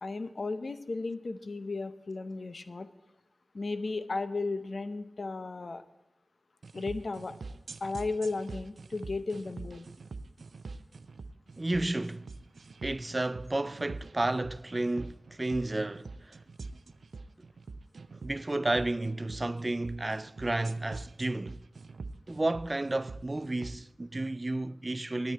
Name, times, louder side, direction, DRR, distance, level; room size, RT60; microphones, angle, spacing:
voice 1, 0.0-2.9 3.5-5.8 6.7-7.3 7.8-9.9, left 3 dB, 60° left, 0.7 m, -35 dB
sound 1, 6.6-23.8, right 3 dB, 80° right, 0.5 m, -45 dB
voice 2, 11.6-12.3 12.8-16.4 18.2-21.6 22.3-25.3, right 2 dB, 30° right, 0.3 m, -32 dB
9.6 x 9.2 x 8.5 m
wide cardioid pair, 85°, 0 cm